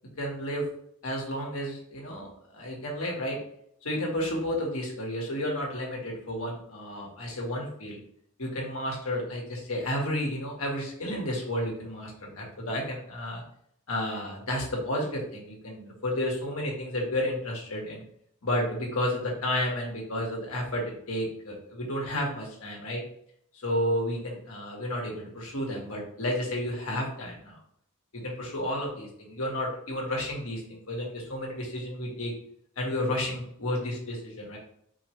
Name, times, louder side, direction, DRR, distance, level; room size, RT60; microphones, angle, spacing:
voice 1, 0.2-0.7 1.0-3.4 3.8-8.0 8.4-13.4 13.9-18.0 18.4-23.0 23.5-27.6 28.1-32.3 32.8-34.6, left 1 dB, 75° left, -1 dB, 1.8 m, -32 dB
4.9 x 3.2 x 3.2 m, 0.68 s
head